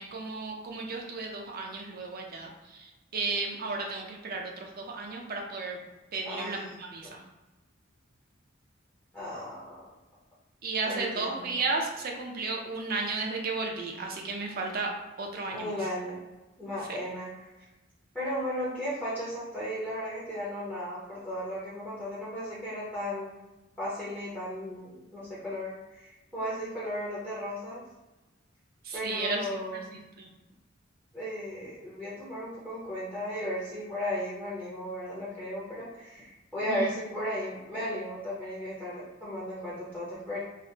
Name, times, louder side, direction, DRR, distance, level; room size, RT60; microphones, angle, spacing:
voice 1, 0.0-5.8 6.1-7.2 10.6-14.9 15.2-15.8 16.9-17.0 28.8-30.3 36.7-36.9, right 3 dB, 50° right, 1 dB, 0.5 m, -34 dB
voice 2, 6.2-6.7 7.0-7.2 9.1-9.8 10.8-11.5 15.5-16.2 16.6-17.3 18.1-23.4 23.8-27.8 28.9-29.8 31.1-40.4, equal, 5° left, -9 dB, 0.7 m, -35 dB
3.3 x 2.1 x 2.8 m, 1.1 s
head